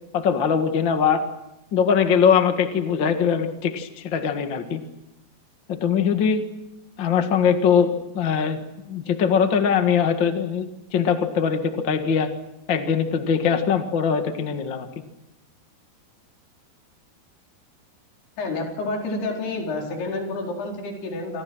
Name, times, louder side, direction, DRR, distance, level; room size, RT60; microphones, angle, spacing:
voice 1, 0.1-1.2 1.7-4.8 5.7-6.4 7.0-8.6 8.9-10.7 10.9-12.3 12.7-14.9, left 7 dB, 50° left, 6 dB, 1.5 m, -21 dB
voice 2, 18.4-21.4, left 2 dB, 65° left, 1 dB, 6.4 m, -29 dB
27.5 x 25.0 x 6.2 m, 0.89 s
omnidirectional pair, 4.9 m